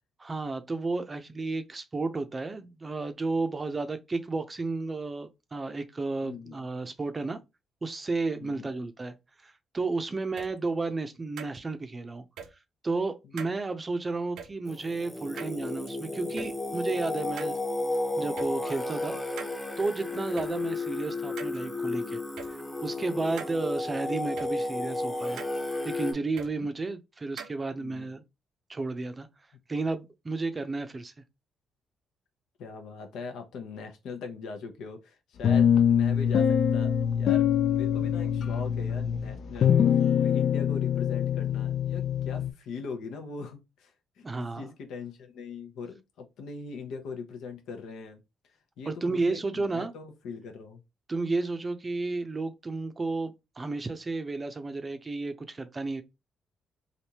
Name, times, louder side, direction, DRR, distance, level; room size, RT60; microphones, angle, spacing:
voice 1, 0.2-7.4 7.8-9.1 9.4-12.2 12.8-17.6 18.2-19.2 19.8-22.2 22.5-25.4 25.8-28.2 28.7-29.3 29.7-31.1 44.2-44.7 48.9-49.9 51.1-56.0, right 3 dB, 25° right, 0.5 m, -32 dB
voice 2, 6.2-6.6 8.4-8.7 13.2-13.3 27.8-28.1 32.6-43.9 44.2-46.0 46.4-48.2 48.8-50.8, left 4 dB, 80° left, 0.8 m, -41 dB
sound 1, 10.4-10.5 11.4-11.6 12.4-12.5 13.4-13.6 14.4-14.5 15.4-15.9 16.4-16.5 17.4-17.6 18.4-18.5 19.4-19.5 20.4-20.5 21.4-21.6 22.4-22.5 23.4-23.5 24.4-24.5 25.4-25.6 26.4-26.5 27.4-27.5, right 7 dB, 80° right, 0.5 m, -41 dB
Singing, 14.7-26.1, left 2 dB, 10° left, 0.8 m, -33 dB
sound 2, 35.4-42.5, left 8 dB, 60° left, 0.4 m, -24 dB
3.3 x 2.6 x 2.8 m
cardioid pair, 90°, 0 cm